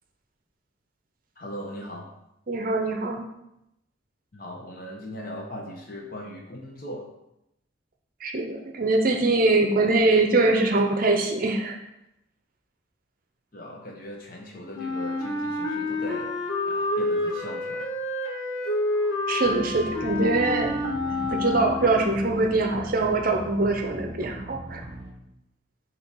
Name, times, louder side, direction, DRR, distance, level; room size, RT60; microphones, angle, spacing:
voice 1, 1.4-2.1 4.3-7.1 13.5-16.3 16.7-17.8, equal, 45° left, 0 dB, 1.2 m, -39 dB
voice 2, 2.5-3.2 8.2-11.8 19.3-24.8, right 2 dB, 45° right, 3 dB, 0.6 m, -23 dB
Wind instrument woodwind instrument, 14.7-22.1, left 2 dB, 80° left, 1.1 m, -28 dB
sound 1, 19.4-25.1, right 1 dB, 15° right, 1.1 m, -40 dB
6.9 x 2.9 x 5.3 m, 0.85 s
head